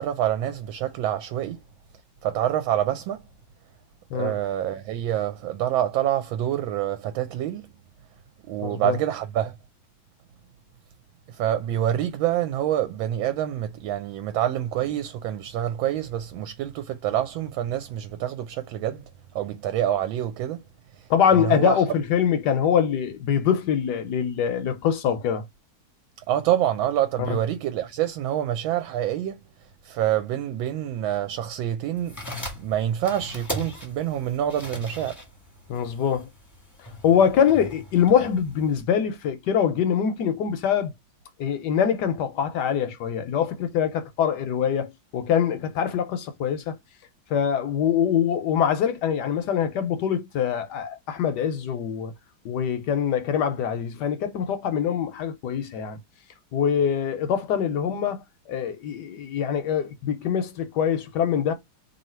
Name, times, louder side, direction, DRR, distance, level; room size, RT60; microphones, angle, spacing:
voice 1, 0.0-1.6 2.2-3.2 4.1-7.7 8.5-9.6 11.3-19.0 19.3-20.6 20.9-21.8 26.3-29.4 29.8-32.2 32.6-35.2, right 11 dB, 75° right, 1.3 m, -26 dB
voice 2, 8.6-9.0 21.1-25.4 27.2-27.3 35.7-36.3 37.0-40.9 41.4-46.8 47.3-52.1 52.4-56.0 56.5-58.2 58.5-61.5, left 8 dB, 65° left, 1.1 m, -24 dB
sound 1, 32.0-38.8, left 1 dB, 15° left, 0.8 m, -39 dB
3.2 x 2.8 x 4.2 m
omnidirectional pair, 2.3 m